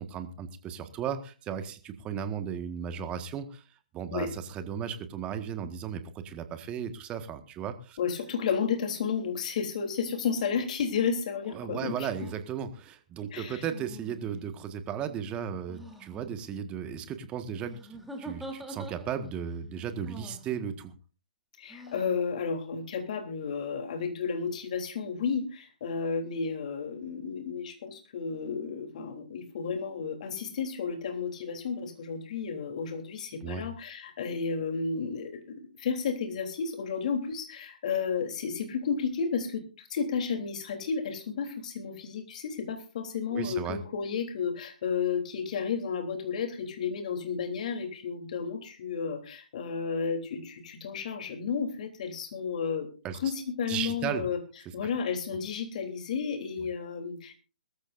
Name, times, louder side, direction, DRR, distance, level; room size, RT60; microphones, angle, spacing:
voice 1, 0.0-3.6 3.9-8.0 11.5-20.9 33.4-33.7 43.3-43.8 53.0-53.2 53.7-54.3, right 8 dB, 20° right, 9 dB, 1.6 m, -35 dB
voice 2, 8.0-11.9 13.3-13.6 21.6-52.9 53.2-54.4 54.7-57.3, left 6 dB, 55° left, 5 dB, 3.4 m, -32 dB
sound 1, 12.1-12.4 13.7-14.6 15.7-16.2 17.6-19.3 20.0-20.5 21.7-22.2, right 1 dB, ahead, 3.3 m, -44 dB
22.0 x 14.0 x 2.6 m, 0.37 s
hypercardioid pair, 130°, 5 cm